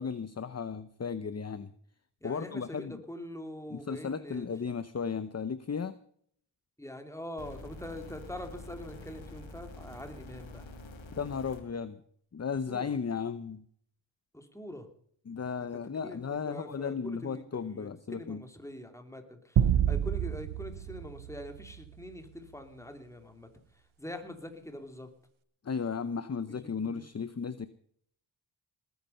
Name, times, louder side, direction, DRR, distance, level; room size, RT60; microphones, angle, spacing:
voice 1, 0.0-1.7 2.2-3.0 3.7-6.0 11.1-12.0 12.3-13.6 15.3-18.4 25.6-27.7, left 6 dB, 35° left, 13 dB, 0.8 m, -35 dB
voice 2, 2.2-4.5 6.8-10.7 12.7-12.9 14.3-14.9 15.6-23.5 24.0-25.1 26.5-27.0, left 1 dB, 5° left, 6 dB, 2.8 m, -44 dB
sound 1, 7.4-11.6 12.6-12.7, left 2 dB, 75° left, 3.2 m, -47 dB
sound 2, 19.6-22.2, right 10 dB, 80° right, 1.0 m, -29 dB
19.5 x 9.6 x 5.7 m, 0.62 s
wide cardioid pair, 85°, 47 cm